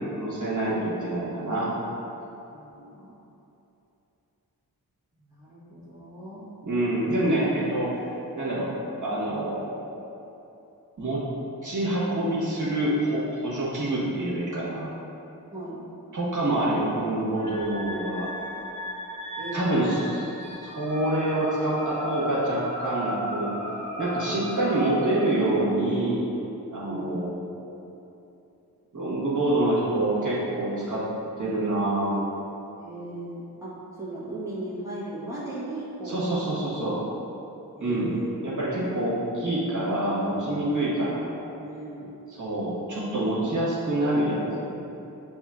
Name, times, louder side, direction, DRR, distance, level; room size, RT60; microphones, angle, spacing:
voice 1, 0.1-1.7 6.6-8.0 8.4-8.7 9.0-9.8 11.0-11.3 11.6-14.9 16.1-18.3 19.5-20.2 20.6-23.5 24.0-26.4 26.7-27.3 28.9-31.0 31.4-32.2 36.0-37.0 37.8-38.1 38.4-41.2 42.4-44.8, right 1 dB, 55° right, -8 dB, 1.4 m, -26 dB
voice 2, 2.5-3.1 5.2-6.5 15.5-15.9 19.4-19.8 26.8-27.1 32.8-36.4 37.8-38.3 40.8-41.1 41.6-42.1, right 2 dB, 10° right, -9 dB, 1.2 m, -37 dB
sound 1, 17.3-25.5, equal, 50° left, 1.0 m, -36 dB
6.2 x 3.0 x 2.4 m, 2.9 s
cardioid pair, 55°, 37 cm